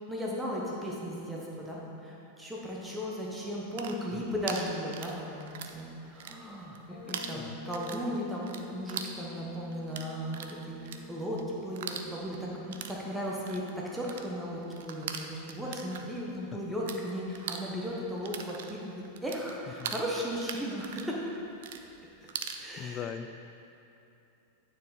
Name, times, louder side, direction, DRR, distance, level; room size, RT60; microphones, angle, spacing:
voice 1, 0.1-21.2 22.6-23.1, equal, 5° right, -4 dB, 1.0 m, -36 dB
sound 1, 3.5-5.8 6.1-6.8 7.1-17.0 17.3-22.6, right 8 dB, 55° right, 0.4 m, -41 dB
sound 2, 6.9-14.5, left 4 dB, 60° left, 1.1 m, -49 dB
voice 2, 22.2-23.3, left 8 dB, 30° left, 9 dB, 0.3 m, -41 dB
9.2 x 4.6 x 4.3 m, 2.8 s
figure-of-eight pair, 90°, 0 cm